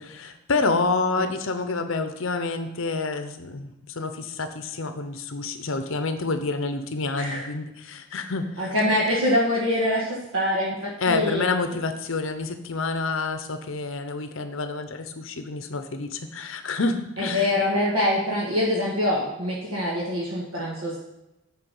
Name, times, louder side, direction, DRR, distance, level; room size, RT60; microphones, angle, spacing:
voice 1, 0.0-8.7 11.0-17.5, left 3 dB, 60° left, 9 dB, 0.8 m, -28 dB
voice 2, 8.6-11.5 17.2-21.0, left 1 dB, 75° right, -5 dB, 1.5 m, -24 dB
8.8 x 4.6 x 5.5 m, 0.93 s
head